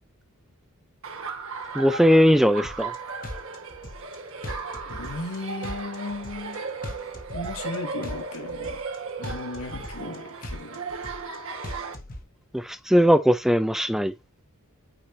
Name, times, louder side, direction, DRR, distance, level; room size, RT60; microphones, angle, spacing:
Laughter, 1.0-11.9, right 4 dB, 65° right, 1.4 m, -36 dB
voice 1, 1.7-2.9 12.5-14.1, equal, ahead, 0.4 m, -19 dB
sound 1, 2.6-3.0 3.2-4.2 4.4-5.4 5.6-6.6 6.8-7.8 8.0-9.0 9.2-10.2 10.4-11.4 11.6-12.2, left 1 dB, 40° left, 1.2 m, -38 dB
voice 2, 4.8-6.6 7.3-8.8 9.2-10.8, left 2 dB, 75° left, 1.7 m, -36 dB
8.7 x 4.8 x 2.6 m
head